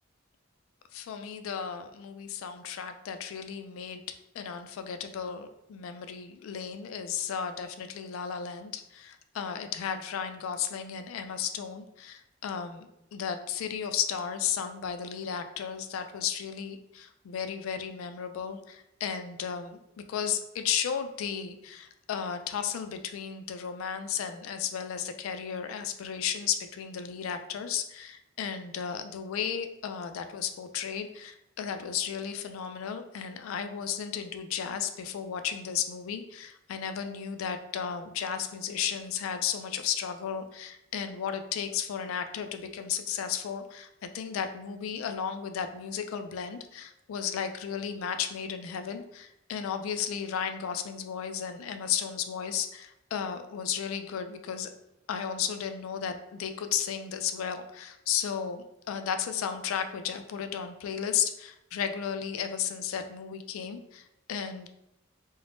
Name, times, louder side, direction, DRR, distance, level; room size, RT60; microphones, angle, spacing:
voice 1, 0.9-4.0 4.3-54.7 55.1-64.7, left 8 dB, 85° left, 8 dB, 0.3 m, -34 dB
3.3 x 2.1 x 2.5 m, 0.84 s
head